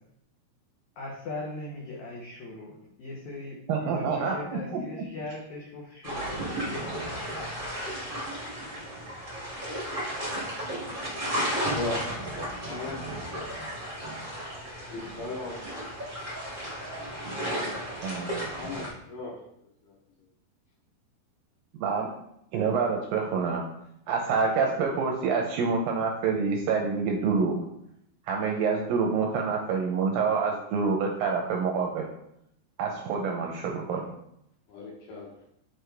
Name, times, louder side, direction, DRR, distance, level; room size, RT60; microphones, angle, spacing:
voice 1, 1.0-6.9, left 2 dB, 85° left, -4 dB, 1.6 m, -39 dB
voice 2, 3.7-4.6 18.0-18.3 21.8-22.1 22.5-23.6 24.1-27.5 28.3-32.0 32.8-34.1, right 5 dB, 80° right, 1 dB, 2.1 m, -27 dB
sound 1, 6.0-18.9, equal, 60° right, 0.5 m, -34 dB
voice 3, 11.7-12.1 12.6-13.0 14.9-15.9 18.6-19.3 19.8-19.9 34.7-35.3, left 2 dB, 65° left, -3 dB, 2.3 m, -36 dB
6.6 x 4.5 x 3.3 m, 0.76 s
omnidirectional pair, 4.6 m